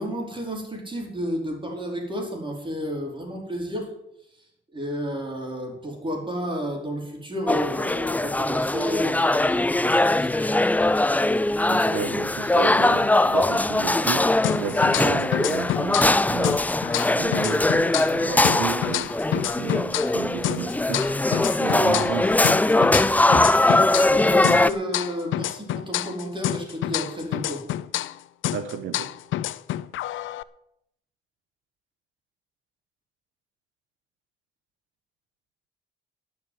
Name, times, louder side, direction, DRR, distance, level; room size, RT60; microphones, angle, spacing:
voice 1, 0.0-3.9 4.3-4.4 4.7-10.6 23.1-27.6, equal, 25° right, 1 dB, 4.6 m, -32 dB
sound 1, 7.5-24.7, left 2 dB, 10° left, 0.4 m, -21 dB
voice 2, 11.6-16.6 17.1-22.3 28.5-29.1, right 7 dB, 80° right, 10 dB, 1.5 m, -33 dB
sound 2, 14.4-16.2 16.4-20.2 20.4-24.2 24.4-28.2 28.4-30.4, left 13 dB, 75° left, 0.6 m, -28 dB
11.5 x 7.4 x 9.5 m, 0.79 s
cardioid pair, 90°, 20 cm